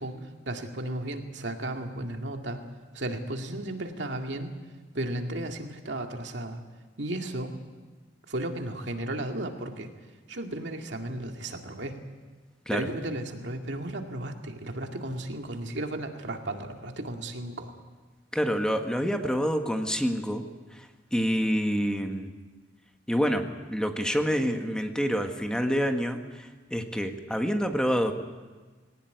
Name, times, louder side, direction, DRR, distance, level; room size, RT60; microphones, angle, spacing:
voice 1, 0.0-2.6 2.9-4.5 4.9-6.6 7.0-7.5 8.3-9.9 10.3-12.0 12.7-17.7, right 1 dB, 85° right, 4 dB, 2.2 m, -34 dB
voice 2, 18.3-20.4 20.7-20.9 21.1-22.3 23.1-28.1, equal, 5° left, 5 dB, 1.5 m, -27 dB
20.0 x 18.0 x 9.5 m, 1.3 s
head